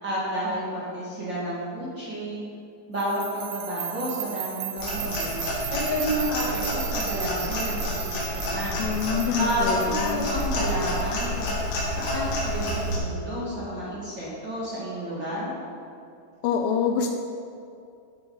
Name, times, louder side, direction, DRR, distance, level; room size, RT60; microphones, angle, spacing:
voice 1, 0.0-2.4 2.9-5.4 5.7-8.8 9.4-11.5 12.0-15.5, equal, 35° right, -8 dB, 2.2 m, -30 dB
sound 1, 3.0-12.0, right 13 dB, 85° right, 3.4 m, -37 dB
Clock, 4.8-13.0, left 1 dB, 65° left, 5.0 m, -29 dB
voice 2, 8.8-10.3 16.4-17.1, left 7 dB, 80° left, 5 dB, 2.7 m, -26 dB
12.5 x 8.8 x 5.7 m, 2.5 s
omnidirectional pair, 5.3 m